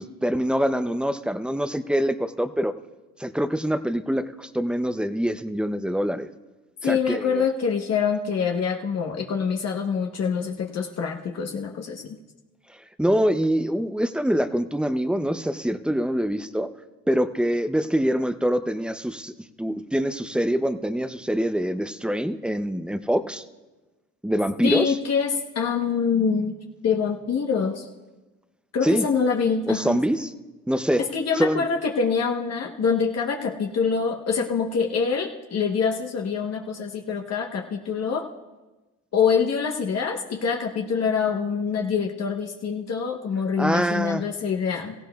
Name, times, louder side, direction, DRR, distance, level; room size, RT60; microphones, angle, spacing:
voice 1, 0.0-2.7 3.2-6.3 6.8-7.5 13.0-16.7 17.1-19.3 19.6-23.4 24.2-25.0 28.8-29.1 29.7-30.3 30.7-31.0 31.4-31.7 43.6-44.3, equal, 5° right, 11 dB, 0.5 m, -24 dB
voice 2, 6.8-12.2 24.6-26.5 26.8-27.9 28.7-30.0 31.0-38.2 39.1-44.9, left 6 dB, 55° left, 1 dB, 1.0 m, -25 dB
17.0 x 15.5 x 2.3 m, 1.2 s
cardioid pair, 90°, 30 cm